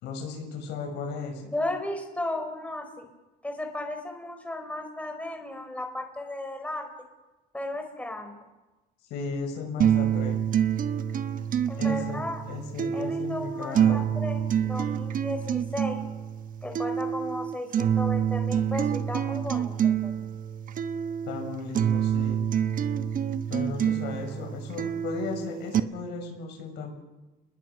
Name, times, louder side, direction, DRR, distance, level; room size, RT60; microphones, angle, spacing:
voice 1, 0.0-1.5 9.1-10.5 11.8-14.2 21.3-22.5 23.5-26.9, left 4 dB, 85° left, 3 dB, 6.5 m, -36 dB
voice 2, 1.5-3.1 3.4-6.9 7.5-8.3 11.7-12.4 12.9-16.0 16.6-20.3, left 1 dB, 10° left, 5 dB, 4.4 m, -35 dB
sound 1, 9.8-25.8, right 9 dB, 55° right, 1.2 m, -27 dB
29.0 x 21.0 x 6.3 m, 1.1 s
cardioid pair, 110°, 17 cm